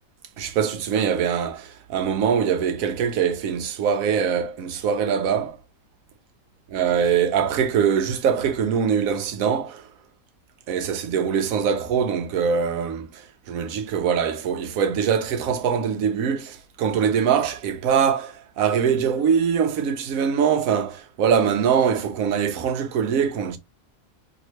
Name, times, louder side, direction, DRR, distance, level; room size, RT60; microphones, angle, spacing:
voice 1, 0.4-5.6 6.7-9.8 10.7-13.2 13.5-23.6, right 7 dB, 85° right, 1.0 m, -23 dB
2.9 x 2.8 x 2.9 m
omnidirectional pair, 1.4 m